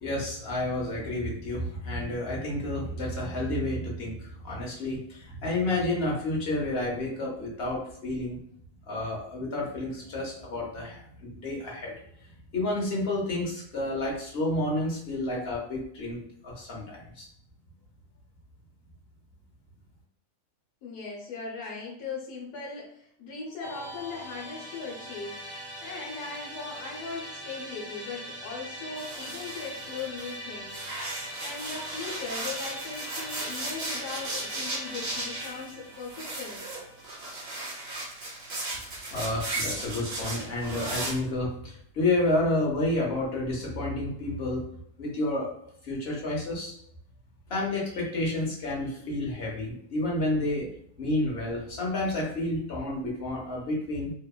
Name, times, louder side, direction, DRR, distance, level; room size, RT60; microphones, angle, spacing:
voice 1, 0.0-8.4 8.9-11.9 12.5-17.3 39.1-44.6 45.0-45.5 45.8-46.7 47.5-50.7 51.0-54.1, left 2 dB, 55° left, -3 dB, 0.8 m, -30 dB
voice 2, 20.8-25.4 25.8-30.8 31.4-36.7, left 4 dB, 85° left, -7 dB, 1.2 m, -39 dB
Musical instrument, 23.6-38.8, equal, 30° left, 0.4 m, -42 dB
sound 1, 29.0-30.3 30.7-41.1, right 2 dB, 50° right, 0.8 m, -36 dB
2.8 x 2.1 x 2.2 m, 0.67 s
omnidirectional pair, 1.6 m